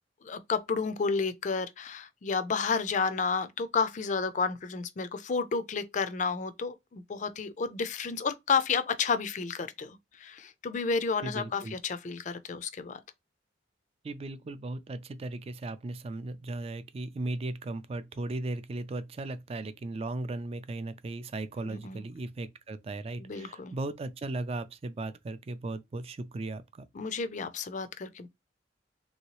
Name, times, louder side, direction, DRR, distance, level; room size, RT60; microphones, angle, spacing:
voice 1, 0.2-13.0 21.6-22.1 23.2-23.7 26.9-28.3, left 5 dB, 40° left, 0.4 m, -31 dB
voice 2, 11.2-11.7 14.0-26.8, right 2 dB, 35° right, 0.3 m, -37 dB
3.1 x 2.8 x 3.0 m
head